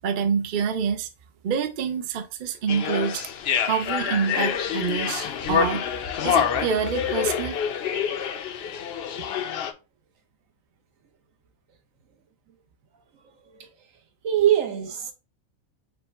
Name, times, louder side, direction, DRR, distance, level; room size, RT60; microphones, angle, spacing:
voice 1, 0.0-1.1 1.4-3.3 3.6-5.9 6.2-7.6, right 6 dB, 55° right, 0.6 m, -26 dB
sound 1, 2.7-9.7, left 8 dB, 60° left, 0.7 m, -27 dB
voice 2, 14.2-15.1, right 11 dB, 70° right, 1.2 m, -23 dB
5.1 x 2.2 x 4.4 m
omnidirectional pair, 1.4 m